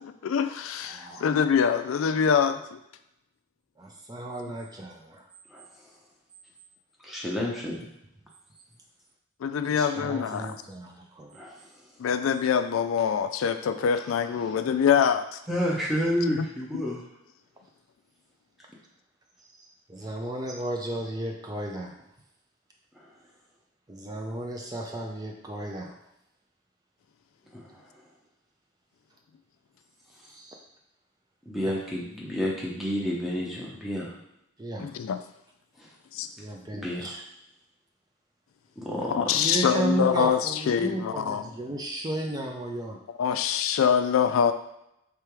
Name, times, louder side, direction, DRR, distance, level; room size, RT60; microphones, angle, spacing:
voice 1, 0.2-2.8 9.4-10.6 12.0-15.4 16.4-16.5 16.7-16.8 34.8-35.2 36.1-36.3 39.1-41.4 43.2-44.5, left 7 dB, 90° left, 10 dB, 0.3 m, -24 dB
voice 2, 0.8-1.2 3.8-5.2 9.7-11.4 19.9-22.0 23.9-26.0 30.3-30.6 31.6-31.7 34.6-34.9 36.4-37.2 39.3-43.0, right 1 dB, 20° right, 1 dB, 0.4 m, -34 dB
voice 3, 7.0-7.9 11.3-11.6 13.9-14.1 14.4-14.5 15.5-17.0 22.9-23.1 27.5-27.9 31.5-34.1 35.8-35.9 36.7-37.1 38.8-39.4, equal, ahead, -4 dB, 0.8 m, -30 dB
3.4 x 3.3 x 4.5 m, 0.82 s
head